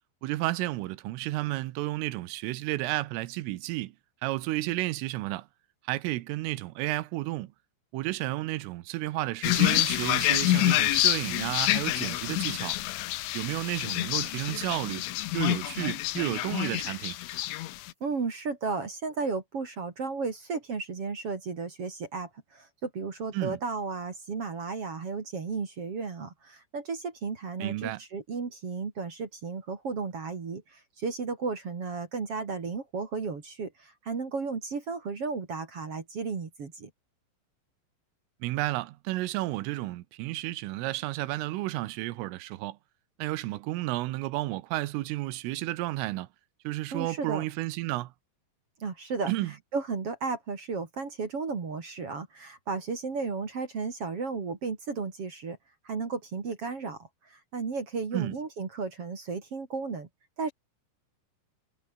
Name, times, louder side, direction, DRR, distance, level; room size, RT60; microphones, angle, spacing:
voice 1, 0.2-3.9 4.2-5.5 5.9-7.5 7.9-12.8 13.3-15.0 15.3-17.2 23.3-23.6 27.6-28.0 38.4-42.8 43.2-46.3 46.7-48.1 49.3-49.5 58.1-58.4, right 18 dB, 80° right, 3.6 m, -32 dB
sound 1, 9.4-17.9, left 16 dB, 75° left, 3.5 m, -27 dB
sound 2, 15.3-18.1, left 2 dB, 15° left, 5.1 m, -57 dB
voice 2, 18.0-36.9 46.9-47.4 48.8-49.3 49.7-55.6 55.8-60.1 60.4-60.5, right 4 dB, 35° right, 2.7 m, -34 dB
omnidirectional pair, 5.8 m